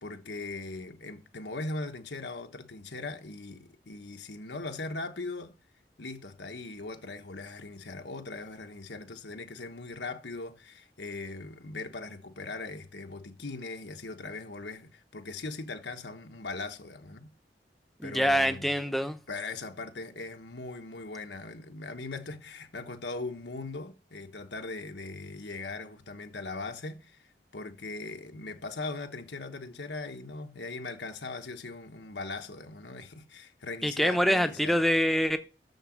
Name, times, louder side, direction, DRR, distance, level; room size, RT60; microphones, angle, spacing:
voice 1, 0.0-5.5 6.0-17.3 18.0-18.7 19.3-34.8, left 3 dB, 85° left, 1.2 m, -40 dB
voice 2, 18.0-19.2 33.8-35.4, equal, ahead, 0.7 m, -25 dB
7.0 x 6.6 x 6.4 m
head